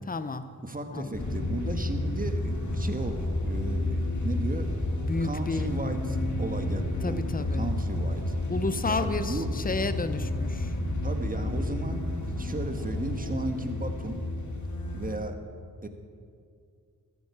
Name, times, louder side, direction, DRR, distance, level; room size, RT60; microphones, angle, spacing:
voice 1, 0.1-0.5 0.9-1.2 5.0-5.7 7.0-7.7 8.5-10.8 11.3-11.6, left 3 dB, 25° left, 12 dB, 0.7 m, -32 dB
voice 2, 0.6-4.7 5.2-8.3 8.8-9.5 11.0-12.0 12.4-14.2 14.9-15.4 15.8-15.9, right 2 dB, 20° right, 6 dB, 1.4 m, -35 dB
sound 1, 1.1-15.1, left 1 dB, 50° left, 2.2 m, -31 dB
13.5 x 11.5 x 4.8 m, 2.3 s
cardioid pair, 40°, 37 cm